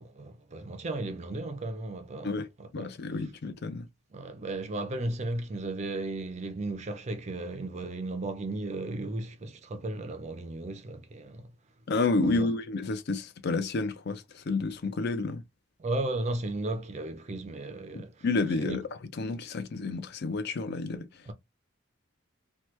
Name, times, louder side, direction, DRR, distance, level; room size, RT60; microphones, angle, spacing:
voice 1, 0.0-2.9 4.1-11.5 12.2-12.5 15.8-18.2 18.6-18.8 21.3-21.4, right 2 dB, 35° right, 0.4 m, -35 dB
voice 2, 2.7-3.9 11.9-15.4 17.9-18.8 19.2-21.3, left 3 dB, 55° left, 0.5 m, -30 dB
2.9 x 2.2 x 3.1 m
head